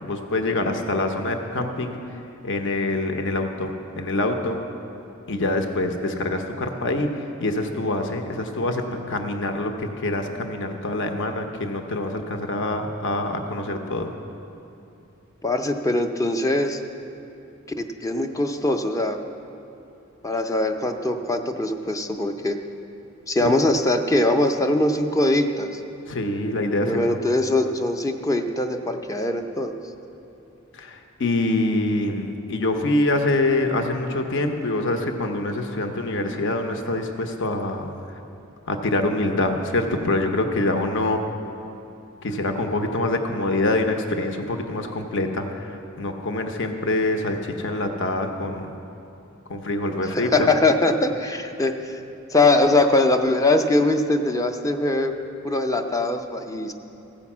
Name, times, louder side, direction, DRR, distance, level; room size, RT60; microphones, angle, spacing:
voice 1, 0.0-2.0 2.4-4.6 5.3-14.1 23.4-23.5 26.1-27.2 30.7-37.9 38.7-41.2 42.2-48.8 49.5-50.5, left 2 dB, 60° left, 5 dB, 0.8 m, -25 dB
voice 2, 15.4-16.8 17.8-19.2 20.2-22.6 23.3-25.8 26.9-29.8 50.0-52.0 52.3-55.1 55.4-56.7, left 2 dB, 15° left, 6 dB, 0.5 m, -22 dB
15.0 x 5.2 x 7.2 m, 2.8 s
head